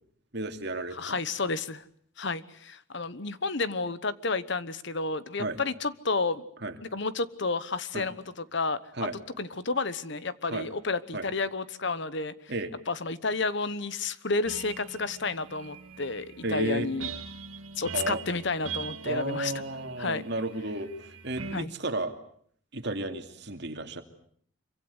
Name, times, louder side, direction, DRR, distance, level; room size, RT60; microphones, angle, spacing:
voice 1, 0.3-1.2 5.4-5.6 6.6-6.8 7.9-8.1 9.0-9.1 10.5-10.7 11.1-11.2 12.5-12.7 16.4-16.9 17.9-18.2 19.0-22.1 22.7-24.0, right 2 dB, 55° right, 6 dB, 2.7 m, -33 dB
voice 2, 0.9-1.8 2.2-6.4 6.9-8.8 9.4-12.3 12.9-17.1 17.8-19.6 20.0-20.2 21.5-21.7, left 3 dB, 55° left, 15 dB, 1.1 m, -31 dB
sound 1, 14.5-21.6, right 6 dB, 85° right, 1.8 m, -42 dB
26.0 x 24.5 x 8.1 m, 0.62 s
head